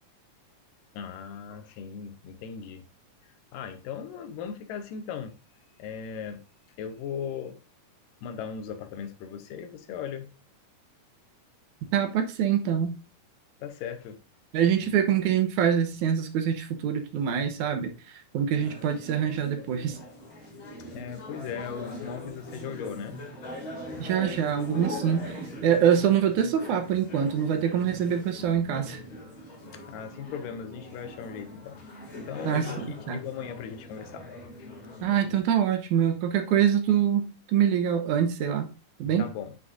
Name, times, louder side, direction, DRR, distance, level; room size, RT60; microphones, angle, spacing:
voice 1, 0.9-2.8 3.5-5.3 5.8-6.4 6.8-7.6 8.2-10.3 13.6-14.2 14.8-15.0 20.9-23.2 29.7-31.8 32.2-34.3 34.6-34.7 39.2-39.6, left 7 dB, 85° left, 2.6 m, -38 dB
voice 2, 11.9-12.9 14.5-17.9 18.3-20.0 24.0-29.0 32.5-33.2 35.0-38.7 39.0-39.2, right 9 dB, 75° right, 2.3 m, -25 dB
sound 1, 18.5-35.4, equal, 40° left, 2.8 m, -41 dB
9.4 x 6.1 x 2.6 m
omnidirectional pair, 3.8 m